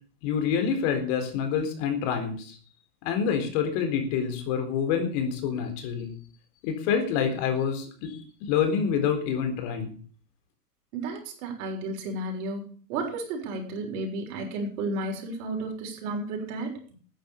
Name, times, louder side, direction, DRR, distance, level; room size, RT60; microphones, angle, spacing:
voice 1, 0.2-2.6 3.0-6.1 6.6-8.1 8.5-9.9, left 7 dB, 45° left, 6 dB, 4.2 m, -27 dB
voice 2, 10.9-12.6 12.9-16.7, right 2 dB, 50° right, 2 dB, 6.6 m, -32 dB
13.5 x 10.0 x 7.2 m, 0.43 s
hypercardioid pair, 110°, 50 cm